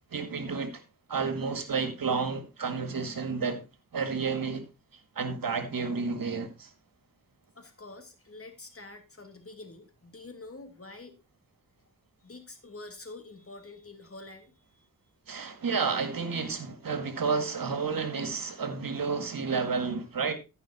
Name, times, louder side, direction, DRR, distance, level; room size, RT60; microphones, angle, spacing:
voice 1, 0.1-0.8 1.1-3.6 3.9-4.7 5.2-6.7 15.3-20.3, right 5 dB, 70° right, 1.9 m, -31 dB
voice 2, 7.5-11.2 12.2-14.8, left 2 dB, 40° left, 2.5 m, -47 dB
14.0 x 5.6 x 4.2 m
cardioid pair, 60°, 35 cm